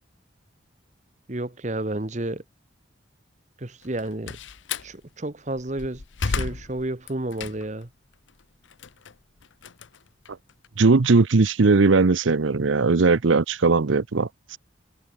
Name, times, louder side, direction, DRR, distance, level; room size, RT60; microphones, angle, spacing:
voice 1, 1.3-2.4 3.6-4.4 4.8-7.9, right 1 dB, 40° right, 1.2 m, -31 dB
Slam, 3.8-4.9 5.5-7.9 8.3-10.7, left 4 dB, 75° left, 0.8 m, -33 dB
voice 2, 10.8-14.6, right 3 dB, 80° right, 0.7 m, -19 dB
head